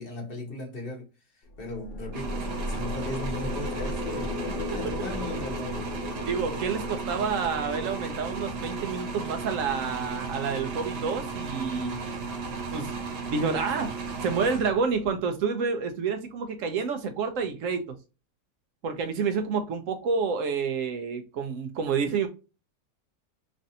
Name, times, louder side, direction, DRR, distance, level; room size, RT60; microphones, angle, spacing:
voice 1, 0.0-5.8, left 1 dB, 45° left, 0.9 m, -38 dB
sound 1, 1.5-12.9, left 3 dB, 80° left, 1.2 m, -38 dB
sound 2, 2.1-15.1, right 4 dB, 90° right, 1.4 m, -35 dB
voice 2, 6.3-12.1 12.7-12.9 13.3-14.0 14.2-17.9 18.8-22.3, right 5 dB, 70° right, 0.8 m, -29 dB
3.2 x 2.6 x 2.6 m
omnidirectional pair, 1.7 m